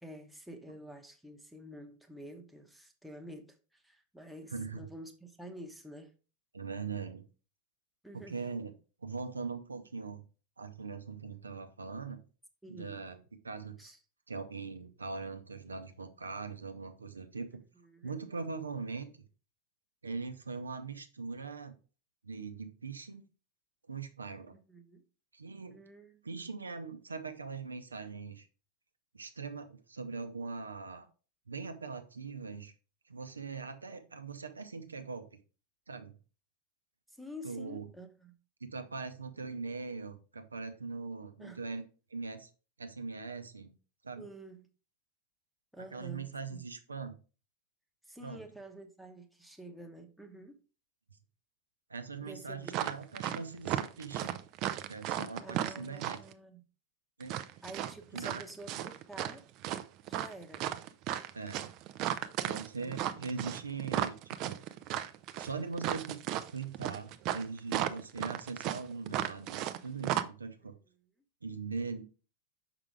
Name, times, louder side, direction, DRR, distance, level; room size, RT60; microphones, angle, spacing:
voice 1, 0.0-6.1 8.0-8.4 12.6-13.0 13.8-14.0 17.5-18.2 24.5-25.0 25.7-26.2 37.1-38.4 41.4-41.6 44.2-44.7 45.7-46.6 48.0-50.6 52.2-52.8 54.2-54.3 55.4-56.6 57.6-59.5 60.1-60.7 62.8-63.3, right 1 dB, ahead, 0.9 m, -49 dB
voice 2, 4.5-4.9 6.5-7.2 8.1-8.7 9.0-10.2 10.6-12.2 12.7-13.2 13.4-13.9 14.3-17.6 18.0-19.2 20.0-21.8 22.2-23.2 23.9-24.6 25.3-25.8 26.2-28.5 29.1-31.1 31.5-32.7 33.1-35.3 35.9-36.1 37.4-37.9 38.6-41.8 42.1-42.5 42.8-43.7 44.0-44.3 45.8-47.2 48.2-48.4 51.9-54.4 54.9-56.2 57.2-57.4 58.1-58.4 61.3-61.7 62.5-64.6 65.4-66.2 66.5-70.8 71.4-72.0, right 4 dB, 75° right, 0.7 m, -41 dB
sound 1, 52.7-53.4 53.6-56.3 57.2-59.4 59.6-69.8 70.0-70.2, right 12 dB, 40° right, 0.5 m, -34 dB
6.0 x 4.9 x 3.5 m
figure-of-eight pair, 90°, 0 cm